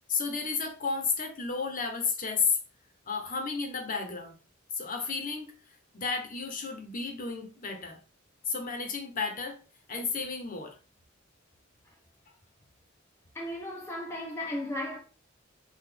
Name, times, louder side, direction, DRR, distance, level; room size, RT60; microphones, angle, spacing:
voice 1, 0.1-2.6 3.1-4.3 4.8-5.5 5.9-8.0 8.5-9.6 9.9-10.7, left 5 dB, 45° left, 0.9 m, -32 dB
voice 2, 13.3-15.0, left 1 dB, 15° left, 0.7 m, -35 dB
6.0 x 2.5 x 3.3 m
head